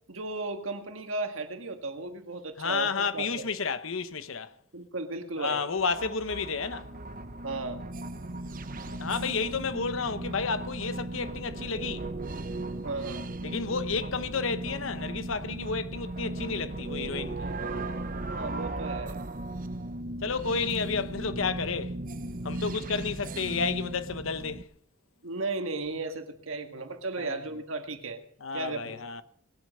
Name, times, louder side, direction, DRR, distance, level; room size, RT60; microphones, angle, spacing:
voice 1, 0.1-3.3 4.7-5.6 7.4-7.8 12.8-13.3 18.1-19.2 25.2-28.2 28.5-29.2, right 3 dB, 80° right, 1.7 m, -35 dB
voice 2, 2.6-4.5 5.4-6.9 9.0-12.1 13.4-17.5 20.2-22.0 22.4-24.7 27.2-27.4 28.4-29.2, left 5 dB, 75° left, 0.9 m, -31 dB
sound 1, 5.8-24.6, right 2 dB, 40° right, 0.8 m, -37 dB
20.5 x 8.1 x 5.5 m
head